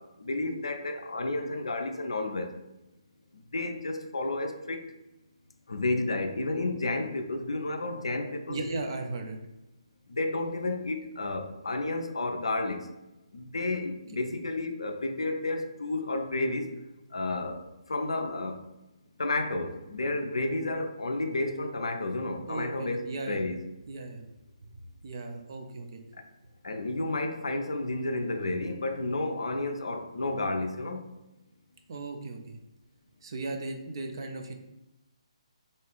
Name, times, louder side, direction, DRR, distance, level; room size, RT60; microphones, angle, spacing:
voice 1, 0.0-2.5 3.3-4.9 5.7-8.6 10.1-12.9 13.3-16.7 17.1-18.6 19.2-23.6 26.6-31.0, left 2 dB, 65° left, 6 dB, 0.4 m, -31 dB
voice 2, 8.5-9.4 22.5-23.4 23.9-24.2 25.0-26.0 31.9-32.6 33.2-34.5, right 2 dB, 45° right, 4 dB, 0.4 m, -36 dB
2.6 x 2.3 x 3.3 m, 0.97 s
figure-of-eight pair, 140°, 3 cm